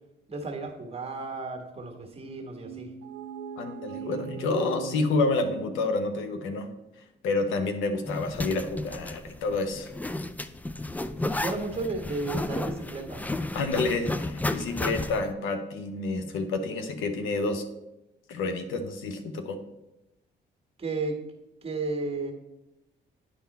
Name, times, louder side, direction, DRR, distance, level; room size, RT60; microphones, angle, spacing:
voice 1, 0.3-2.9 11.3-13.2 20.8-21.2 21.6-22.3, right 3 dB, 30° right, 3 dB, 1.5 m, -33 dB
sound 1, 2.6-6.4, right 5 dB, 85° right, 0.6 m, -40 dB
voice 2, 3.6-6.7 7.2-9.9 13.5-17.6 18.3-19.6, left 3 dB, 90° left, 8 dB, 0.8 m, -29 dB
Zipper (clothing), 8.1-15.3, left 2 dB, 10° left, 0.3 m, -32 dB
10.0 x 4.1 x 4.2 m, 0.93 s
cardioid pair, 90°, 20 cm